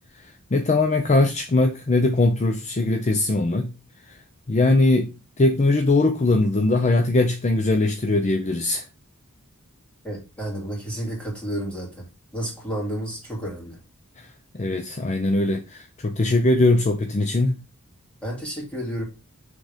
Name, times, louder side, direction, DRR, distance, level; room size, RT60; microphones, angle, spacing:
voice 1, 0.1-3.7 4.1-4.2 4.5-8.9 14.2-17.6, left 2 dB, 30° left, 0.6 m, -21 dB
voice 2, 10.0-12.1 12.3-13.8 18.2-19.0, right 1 dB, 5° left, 2.7 m, -31 dB
6.3 x 3.8 x 4.9 m
head